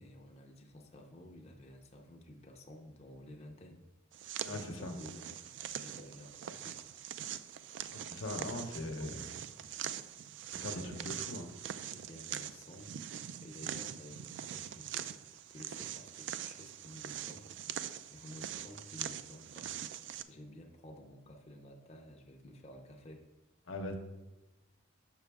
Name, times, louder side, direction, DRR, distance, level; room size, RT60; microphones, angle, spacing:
voice 1, 0.0-3.8 4.4-5.4 5.8-6.8 8.4-8.6 8.8-9.5 10.7-11.2 11.8-12.9 13.4-15.1 15.5-17.5 17.8-19.7 20.3-23.3, left 1 dB, 30° left, 2 dB, 0.6 m, -52 dB
sound 1, 4.1-20.2, right 10 dB, 65° right, 0.3 m, -43 dB
voice 2, 4.4-4.9 7.9-9.1 10.5-11.5 23.7-24.0, left 2 dB, 85° left, 4 dB, 0.9 m, -40 dB
6.3 x 6.1 x 3.4 m, 1.0 s
head